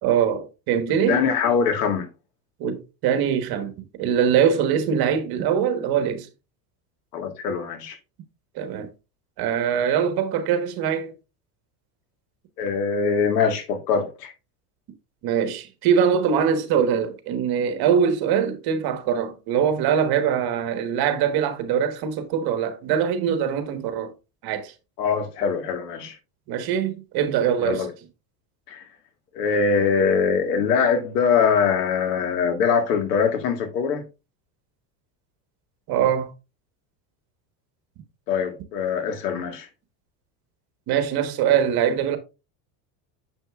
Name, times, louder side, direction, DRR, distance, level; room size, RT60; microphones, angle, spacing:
voice 1, 0.0-1.2 2.6-3.7 4.0-6.3 8.5-8.9 9.4-11.1 15.2-24.1 24.4-24.7 26.5-27.9 35.9-36.3 40.9-42.2, right 8 dB, 50° right, 1.4 m, -22 dB
voice 2, 1.1-2.1 7.1-8.0 12.6-14.3 25.0-26.2 27.6-27.9 28.7-28.8 29.3-34.0 38.3-39.7, left 6 dB, 85° left, 1.8 m, -23 dB
6.8 x 6.2 x 2.4 m
supercardioid pair, 120°, 46 cm